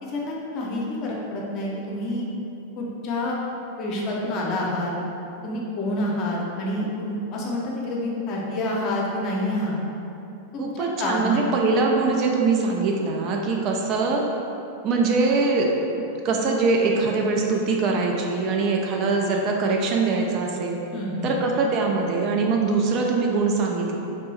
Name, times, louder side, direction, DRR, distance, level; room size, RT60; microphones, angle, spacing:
voice 1, 0.0-2.3 2.8-3.4 3.8-4.9 5.4-9.7 10.5-11.4 20.9-21.3, left 1 dB, 35° left, -3 dB, 0.6 m, -28 dB
voice 2, 10.6-14.2 14.8-15.7 16.2-20.8 21.2-24.0, right 3 dB, 40° right, 0 dB, 0.3 m, -22 dB
3.1 x 2.6 x 3.0 m, 2.9 s
figure-of-eight pair, 90°, 0 cm